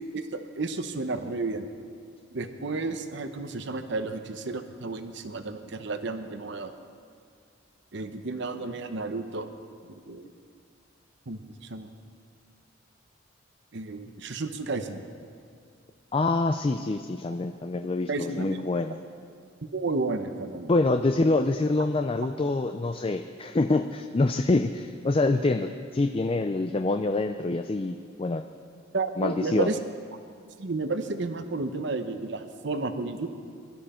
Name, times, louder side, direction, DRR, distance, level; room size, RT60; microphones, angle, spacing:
voice 1, 0.1-1.7 2.3-6.7 7.9-9.5 9.8-10.3 11.3-11.9 13.7-15.0 18.1-18.6 19.7-20.7 28.9-29.8 30.6-33.3, right 3 dB, 60° right, 8 dB, 0.9 m, -32 dB
voice 2, 16.1-19.0 20.7-28.4 29.2-29.7, left 2 dB, 30° left, 7 dB, 0.4 m, -26 dB
22.0 x 12.5 x 4.4 m, 2.3 s
head